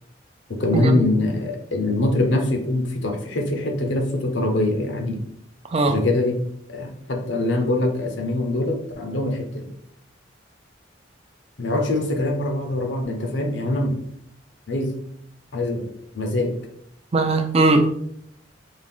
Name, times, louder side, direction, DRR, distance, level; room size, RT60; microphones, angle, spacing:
voice 1, 0.6-5.2 5.9-6.4 6.7-9.7 11.6-14.0 14.7-15.0 15.5-15.9 16.1-16.5, left 2 dB, 70° left, 3 dB, 0.7 m, -23 dB
voice 2, 17.1-17.9, right 2 dB, 35° right, 5 dB, 0.4 m, -19 dB
3.7 x 2.4 x 3.5 m, 0.69 s
head